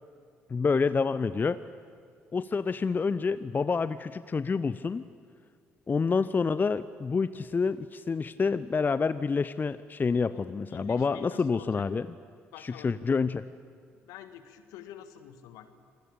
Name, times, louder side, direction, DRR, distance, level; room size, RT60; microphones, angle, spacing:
voice 1, 0.5-1.6 2.3-5.0 5.9-12.1 12.6-13.5, left 5 dB, 30° left, 14 dB, 0.7 m, -28 dB
voice 2, 10.2-11.8 12.5-13.0 14.0-15.8, left 10 dB, 70° left, 9 dB, 1.7 m, -47 dB
27.0 x 20.5 x 8.6 m, 2.2 s
figure-of-eight pair, 50°, 6 cm